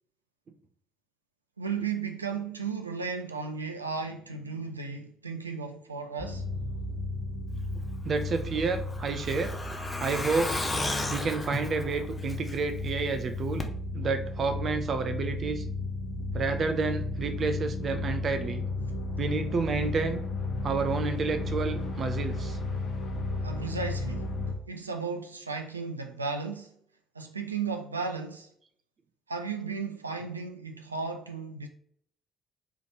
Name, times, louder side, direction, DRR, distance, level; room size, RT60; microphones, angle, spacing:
voice 1, 1.6-6.4 23.4-24.3 24.7-26.7 27.1-28.5 29.3-31.7, right 5 dB, 90° right, 0.3 m, -35 dB
sound 1, 6.2-24.5, left 2 dB, 55° left, 1.0 m, -34 dB
voice 2, 8.0-9.5 10.0-10.7 11.1-13.7 13.9-15.6 16.3-18.6 19.2-20.2 20.6-22.6, right 4 dB, 45° right, 0.6 m, -30 dB
Truck, 8.2-12.9 13.2-13.3 13.6-13.7, left 2 dB, 20° left, 0.7 m, -34 dB
3.9 x 3.3 x 2.9 m
figure-of-eight pair, 45°, 0 cm